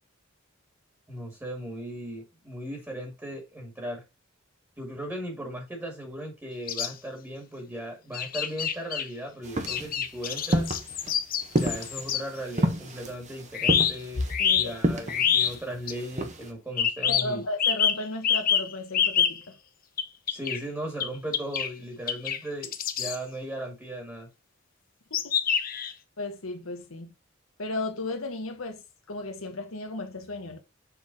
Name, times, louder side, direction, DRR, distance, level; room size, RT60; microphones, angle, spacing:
voice 1, 1.1-4.0 4.8-10.7 11.5-14.2 14.5-17.4 20.3-24.3, right 1 dB, 10° right, 2.0 m, -37 dB
sound 1, 6.7-6.9 8.1-9.1 9.7-12.2 13.5-14.7 15.1-15.5 15.9-16.0 16.8-17.3 17.6-19.4 20.0-20.6 21.0-21.1 21.3-21.7 22.1-22.4 22.6-23.2 25.1-25.9, left 8 dB, 45° left, 0.8 m, -26 dB
sound 2, 9.4-16.5, right 1 dB, 35° right, 1.2 m, -30 dB
voice 2, 14.4-15.4 17.1-19.4 25.1-25.4 26.2-27.1 27.6-28.8 29.1-30.6, left 2 dB, 85° left, 1.2 m, -35 dB
7.2 x 4.1 x 3.8 m
head